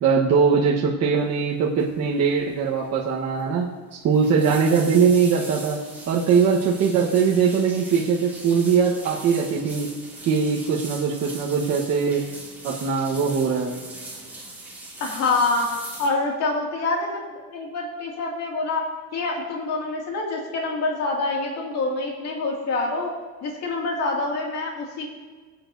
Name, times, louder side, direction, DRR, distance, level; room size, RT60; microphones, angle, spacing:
voice 1, 0.0-3.7 4.0-5.8 6.1-9.9 10.3-12.2 12.6-13.8, right 6 dB, 45° right, -4 dB, 1.2 m, -21 dB
sound 1, 1.8-2.0 2.3-2.6 2.9-3.0 3.9-16.1, right 2 dB, 5° right, 1.9 m, -40 dB
voice 2, 15.0-18.9 19.1-23.1 23.4-25.1, left 3 dB, 45° left, -1 dB, 2.3 m, -26 dB
21.5 x 8.7 x 2.7 m, 1.4 s
cardioid pair, 170°, 36 cm